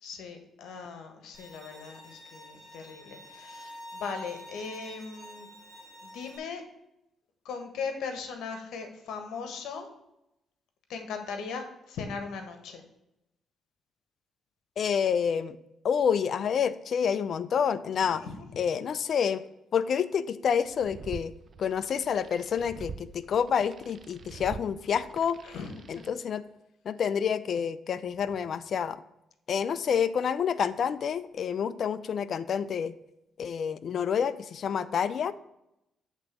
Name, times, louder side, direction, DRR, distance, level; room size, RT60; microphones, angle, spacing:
voice 1, 0.0-5.5 6.0-6.6 7.4-9.9 10.9-12.8 18.2-18.3 25.4-25.7, left 5 dB, 80° left, 5 dB, 1.4 m, -38 dB
Bowed string instrument, 1.3-6.4, equal, 20° left, 3.6 m, -47 dB
voice 2, 14.8-15.6 15.8-18.2 18.6-19.4 19.7-21.3 21.6-25.4 25.9-26.4 26.8-29.0 29.5-32.9 33.4-35.3, left 7 dB, 55° left, 13 dB, 0.5 m, -28 dB
sound 1, 20.6-26.1, right 5 dB, 45° right, 0.6 m, -45 dB
8.3 x 3.9 x 6.9 m, 0.86 s
cardioid pair, 90°, 0 cm